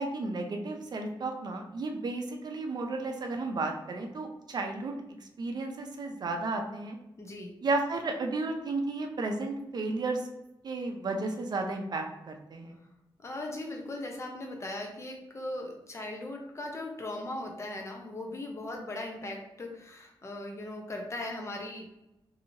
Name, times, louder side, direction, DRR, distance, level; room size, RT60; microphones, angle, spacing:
voice 1, 0.0-5.0 5.4-7.0 7.6-10.2 10.6-12.8, right 3 dB, 50° right, 3 dB, 0.5 m, -33 dB
voice 2, 7.2-7.5 13.2-21.9, left 1 dB, 30° left, 1 dB, 0.6 m, -38 dB
3.0 x 2.7 x 2.7 m, 0.90 s
wide cardioid pair, 115°, 9 cm